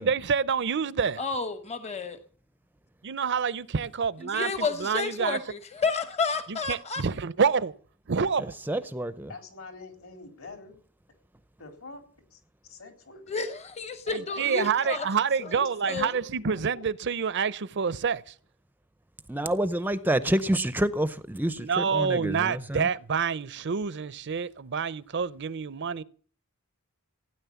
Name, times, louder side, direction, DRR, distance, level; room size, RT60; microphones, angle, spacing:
voice 1, 0.0-1.2 3.0-4.5 4.8-5.4 6.5-7.7 8.1-8.5 14.1-18.3 21.6-26.0, right 6 dB, 50° right, 0.6 m, -27 dB
voice 2, 1.2-2.2 4.2-7.0 13.3-15.1 15.4-16.2, left 4 dB, 30° left, 1.0 m, -31 dB
voice 3, 8.4-9.3 19.3-22.9, right 1 dB, 10° right, 0.6 m, -28 dB
voice 4, 9.3-10.8 11.6-12.0 12.3-12.4 12.7-13.4 16.5-16.8, left 3 dB, 65° left, 3.9 m, -45 dB
16.5 x 9.8 x 7.0 m
head